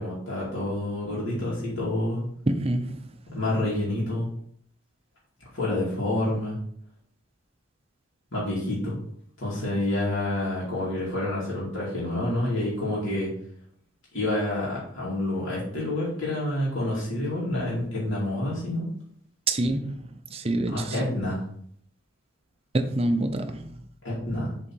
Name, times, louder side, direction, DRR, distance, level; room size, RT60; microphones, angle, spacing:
voice 1, 0.0-2.2 3.3-4.3 5.5-6.6 8.3-9.0 9.4-13.3 14.1-18.9 20.7-21.4 24.0-24.5, left 1 dB, 75° left, 2.4 m, -28 dB
voice 2, 2.5-3.1 19.5-21.0 22.7-23.7, right 2 dB, 30° right, 0.6 m, -27 dB
7.3 x 3.8 x 4.6 m
head